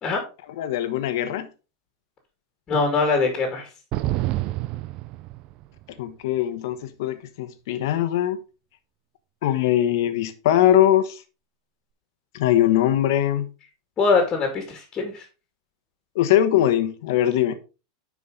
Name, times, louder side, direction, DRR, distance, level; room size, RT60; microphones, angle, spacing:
voice 1, 0.6-1.5 5.9-8.4 9.4-11.2 12.3-13.5 16.1-17.6, left 12 dB, 65° left, 1.2 m, -21 dB
voice 2, 2.7-3.7 14.0-15.2, left 4 dB, 25° left, 2.1 m, -22 dB
sound 1, 3.9-5.8, right 16 dB, 40° right, 0.5 m, -28 dB
9.9 x 4.9 x 3.8 m
supercardioid pair, 145°, 2 cm